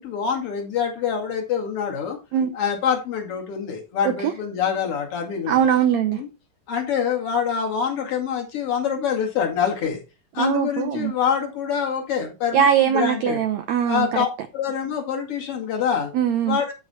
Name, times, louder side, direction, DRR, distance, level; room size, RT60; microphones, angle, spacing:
voice 1, 0.0-2.2 2.5-5.6 6.1-6.3 6.7-10.0 10.3-13.4 13.9-14.3 14.5-16.1 16.4-16.7, left 7 dB, 45° left, 2.7 m, -25 dB
voice 2, 5.5-6.2 10.4-11.1 12.5-14.2 16.1-16.6, right 9 dB, 85° right, 1.5 m, -21 dB
13.5 x 4.7 x 4.2 m
omnidirectional pair, 4.3 m